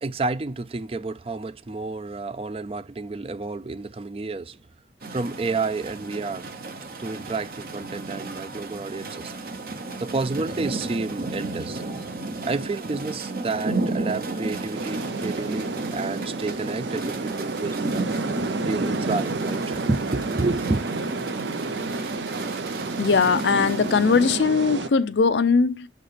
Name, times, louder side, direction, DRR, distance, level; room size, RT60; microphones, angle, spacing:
voice 1, 0.0-4.6 5.1-6.4 7.0-9.3 10.0-11.8 12.4-18.1 18.6-20.8, right 3 dB, 30° right, 0.4 m, -30 dB
sound 1, 5.0-24.4, right 2 dB, 55° right, 0.9 m, -33 dB
sound 2, 14.7-24.9, right 3 dB, 85° right, 0.7 m, -31 dB
voice 2, 23.0-25.9, left 5 dB, 80° left, 0.5 m, -20 dB
6.6 x 4.3 x 5.0 m
head